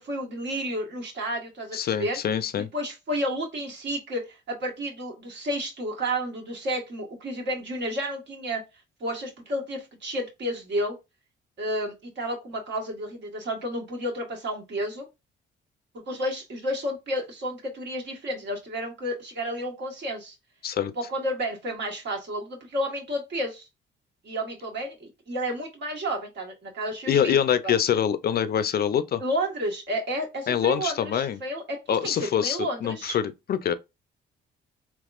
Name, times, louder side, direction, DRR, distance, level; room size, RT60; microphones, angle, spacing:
voice 1, 0.0-2.2 2.6-8.6 9.0-11.0 11.6-15.0 15.9-20.4 20.9-23.7 24.2-27.4 27.6-27.7 29.2-33.2, equal, 60° right, 1.5 m, -31 dB
voice 2, 1.7-2.7 20.6-20.9 27.1-29.2 30.5-31.4 31.9-33.7, left 8 dB, 50° left, 0.5 m, -25 dB
3.5 x 2.9 x 2.4 m
cardioid pair, 90°, 20 cm